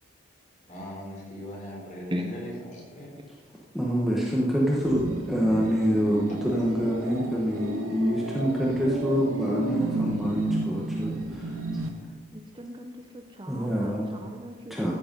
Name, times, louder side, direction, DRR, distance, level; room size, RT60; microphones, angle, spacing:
voice 1, 0.7-3.1, equal, 35° left, -3 dB, 4.0 m, -39 dB
voice 2, 3.7-11.6 13.5-14.1 14.7-14.9, equal, ahead, -4 dB, 1.1 m, -26 dB
sound 1, 4.6-11.9, right 2 dB, 85° right, 1.3 m, -32 dB
voice 3, 12.3-14.8, equal, 20° right, 4 dB, 0.6 m, -37 dB
14.0 x 7.9 x 5.3 m, 1.5 s
head